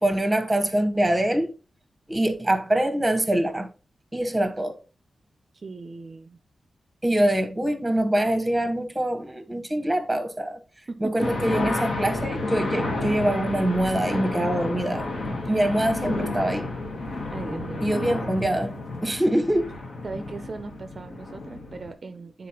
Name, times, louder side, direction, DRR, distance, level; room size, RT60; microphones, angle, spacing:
voice 1, 0.0-1.5 2.1-3.7 4.1-4.8 7.0-10.6 11.0-16.7 17.8-18.7 19.0-19.7, right 1 dB, 10° right, 0.9 m, -24 dB
voice 2, 5.5-6.4 10.9-11.0 17.3-17.9 20.0-22.5, right 3 dB, 45° right, 0.4 m, -38 dB
sound 1, 11.2-21.9, left 2 dB, 70° left, 1.5 m, -31 dB
9.3 x 4.0 x 2.9 m
wide cardioid pair, 115°, 0 cm